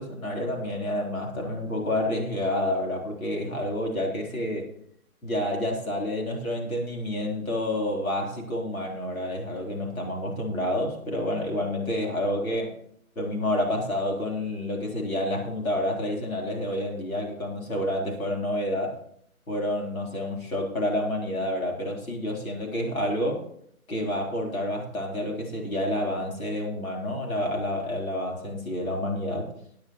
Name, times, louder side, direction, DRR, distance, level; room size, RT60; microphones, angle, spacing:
voice 1, 0.0-4.7 5.2-12.8 13.2-19.0 19.5-23.5 23.9-29.5, left 1 dB, 70° left, 0 dB, 3.8 m, -29 dB
16.5 x 9.5 x 3.0 m, 0.65 s
hypercardioid pair, 175°, 43 cm